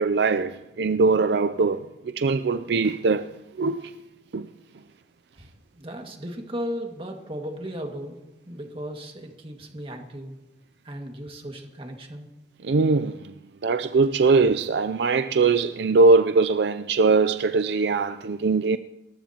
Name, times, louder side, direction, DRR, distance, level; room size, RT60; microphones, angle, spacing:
voice 1, 0.0-1.8 2.2-3.3 3.6-3.9 4.3-4.5 12.6-13.3 13.6-18.8, right 4 dB, 70° right, 0.5 m, -21 dB
voice 2, 5.7-10.3 10.8-12.3, equal, 30° right, 2.0 m, -36 dB
29.0 x 14.5 x 2.9 m
head